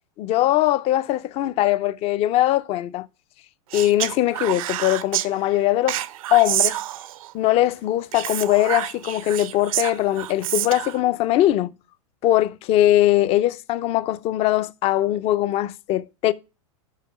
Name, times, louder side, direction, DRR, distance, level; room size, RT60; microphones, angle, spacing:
voice 1, 0.2-3.1 3.7-6.0 6.3-6.8 7.3-11.7 12.2-16.3, left 14 dB, 35° left, 0.4 m, -21 dB
Speech, 3.7-5.3 5.9-7.3 8.1-11.0, right 14 dB, 75° right, 0.5 m, -28 dB
5.7 x 5.4 x 5.8 m
hypercardioid pair, 125°, 18 cm